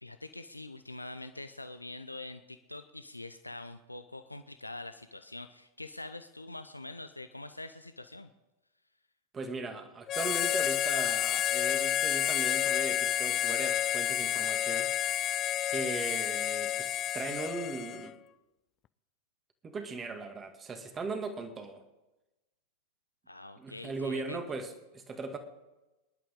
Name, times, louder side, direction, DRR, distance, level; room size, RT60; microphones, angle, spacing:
voice 1, 0.0-8.3 23.3-24.4, left 2 dB, 90° left, 10 dB, 0.6 m, -44 dB
voice 2, 9.3-14.9 15.7-18.2 19.6-21.8 23.6-25.4, right 3 dB, 20° right, 6 dB, 2.0 m, -38 dB
Harmonica, 10.1-18.1, left 11 dB, 35° left, 0.4 m, -30 dB
25.0 x 11.0 x 3.7 m, 1.1 s
figure-of-eight pair, 90°, 0 cm